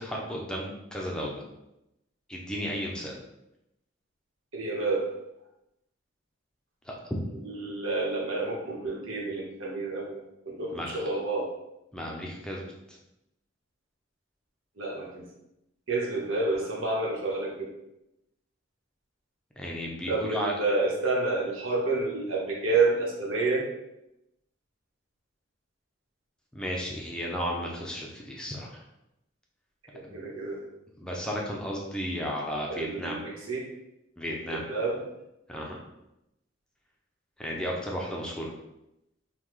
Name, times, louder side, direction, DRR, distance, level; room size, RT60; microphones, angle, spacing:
voice 1, 0.0-1.4 2.3-3.2 6.8-7.2 10.7-11.0 11.9-12.6 12.9-13.0 19.6-20.5 26.5-28.8 30.1-30.2 31.0-33.2 34.2-34.7 35.5-35.8 37.4-38.5, equal, 5° left, -2 dB, 0.5 m, -34 dB
voice 2, 4.5-5.1 7.5-10.2 10.5-11.5 14.8-15.2 15.9-17.7 20.1-23.7 29.9-30.6 32.7-33.7 34.5-35.0, right 3 dB, 85° right, -2 dB, 1.1 m, -29 dB
5.6 x 2.3 x 3.1 m, 0.87 s
head